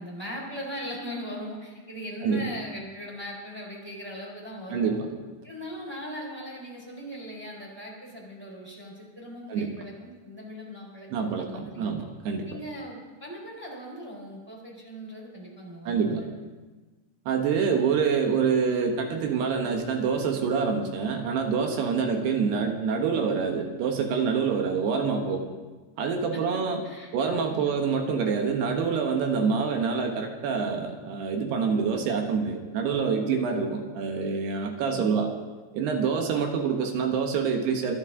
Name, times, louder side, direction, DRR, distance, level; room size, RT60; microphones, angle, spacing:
voice 1, 0.0-5.0 5.4-11.9 12.5-16.3 21.9-22.2 26.3-26.4 26.8-27.1 27.4-27.8 34.8-35.2, equal, 5° right, -3 dB, 3.2 m, -39 dB
voice 2, 4.7-5.1 9.5-9.7 11.1-12.5 15.8-16.2 17.3-25.5 26.0-26.8 27.1-35.3 35.7-38.0, right 5 dB, 70° right, 3 dB, 3.2 m, -26 dB
25.5 x 11.5 x 3.8 m, 1.3 s
omnidirectional pair, 5.1 m